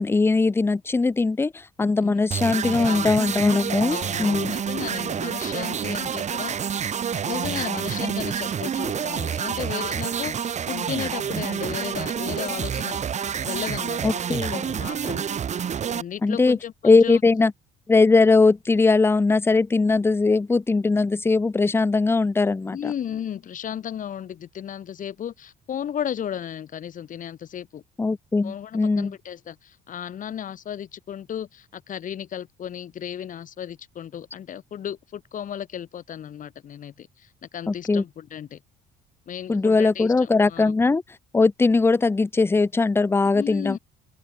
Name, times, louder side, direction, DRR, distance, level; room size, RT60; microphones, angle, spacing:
voice 1, 0.0-4.5 14.0-14.6 16.2-16.6 16.8-17.5 17.9-22.9 28.0-29.1 37.7-38.0 39.5-41.0 41.3-43.8, left 3 dB, 15° left, 0.7 m, -20 dB
sound 1, 2.3-16.0, right 8 dB, 45° right, 3.7 m, -28 dB
voice 2, 2.6-3.2 3.9-13.0 13.4-14.0 14.3-15.5 15.9-17.2 22.7-27.8 28.4-38.6 39.3-40.7 43.3-43.8, left 9 dB, 50° left, 5.7 m, -34 dB
open air
cardioid pair, 110°, 17 cm